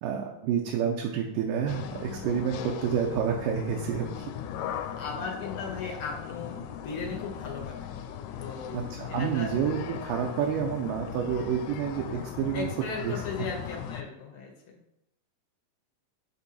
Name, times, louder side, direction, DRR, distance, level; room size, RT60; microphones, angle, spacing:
voice 1, 0.0-4.1 8.7-12.7 13.0-13.1 13.4-13.5, right 8 dB, 80° right, 0 dB, 2.3 m, -29 dB
sound 1, 1.7-14.0, left 9 dB, 85° left, 2.2 m, -38 dB
voice 2, 4.6-7.9 8.4-9.6 12.5-14.5, left 5 dB, 50° left, 0 dB, 1.8 m, -37 dB
10.5 x 3.7 x 4.2 m, 0.83 s
omnidirectional pair, 3.8 m